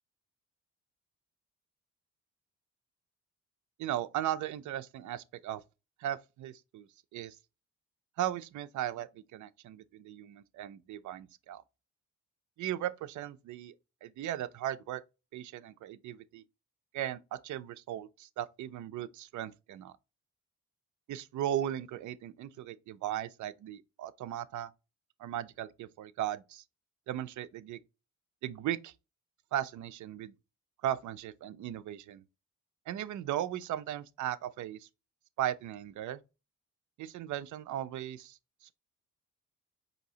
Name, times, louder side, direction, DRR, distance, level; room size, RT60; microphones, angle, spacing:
voice 1, 3.8-5.6 6.0-7.4 8.2-11.6 12.6-13.7 14.0-15.0 15.3-16.4 16.9-19.9 21.1-24.7 25.2-26.6 27.1-27.8 28.4-28.9 29.5-30.3 30.8-32.2 32.9-34.9 35.4-36.2 37.0-38.7, right 12 dB, 75° right, 0.5 m, -37 dB
5.2 x 2.8 x 2.7 m
cardioid pair, 105°, 30 cm